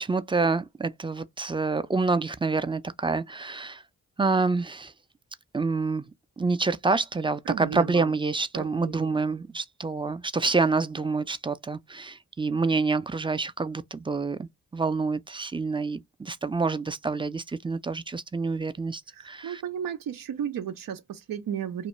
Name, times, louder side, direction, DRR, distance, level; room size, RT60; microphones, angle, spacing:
voice 1, 0.0-3.8 4.2-4.9 5.5-6.0 6.4-19.0 19.3-19.6, right 4 dB, 15° right, 0.4 m, -27 dB
voice 2, 7.4-8.2 8.5-9.4 19.1-21.9, right 8 dB, 90° right, 0.6 m, -34 dB
2.5 x 2.2 x 3.0 m
cardioid pair, 60°, 32 cm